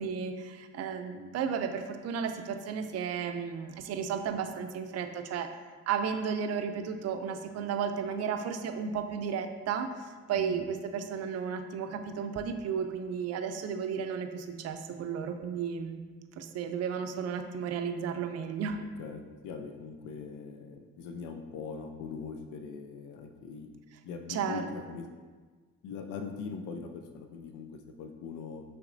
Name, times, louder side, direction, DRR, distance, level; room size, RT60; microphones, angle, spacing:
voice 1, 0.0-5.5 5.9-9.9 10.3-16.0 16.4-18.8 24.3-24.7, right 7 dB, 55° right, 7 dB, 0.5 m, -33 dB
voice 2, 18.8-23.7 24.0-25.1 25.8-28.6, left 5 dB, 80° left, 5 dB, 0.5 m, -41 dB
5.9 x 3.2 x 2.5 m, 1.4 s
cardioid pair, 90°, 30 cm